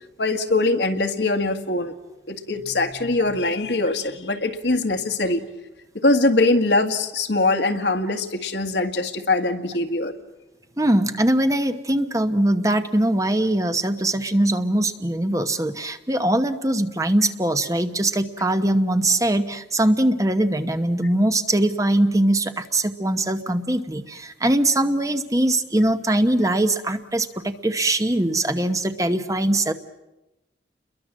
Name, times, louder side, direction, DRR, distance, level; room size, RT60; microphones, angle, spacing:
voice 1, 0.2-1.9 2.3-5.4 6.0-10.1, left 2 dB, 70° left, 7 dB, 1.9 m, -22 dB
voice 2, 10.8-29.7, right 1 dB, 15° right, 9 dB, 1.0 m, -21 dB
30.0 x 22.5 x 7.5 m, 0.99 s
head